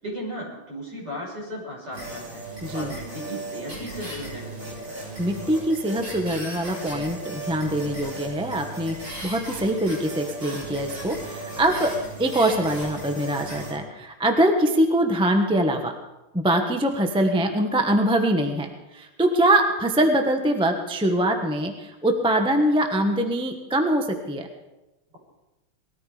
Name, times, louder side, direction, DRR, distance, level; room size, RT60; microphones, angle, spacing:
voice 1, 0.0-2.4 2.7-4.8, equal, 50° right, -3 dB, 6.4 m, -35 dB
sound 1, 1.9-13.7, right 2 dB, 70° right, 7.0 m, -36 dB
voice 2, 2.6-2.9 5.2-9.0 9.2-11.9 12.2-15.9 16.3-24.5, right 1 dB, 5° right, 5 dB, 0.7 m, -23 dB
20.0 x 14.0 x 5.0 m, 1.0 s
omnidirectional pair, 2.4 m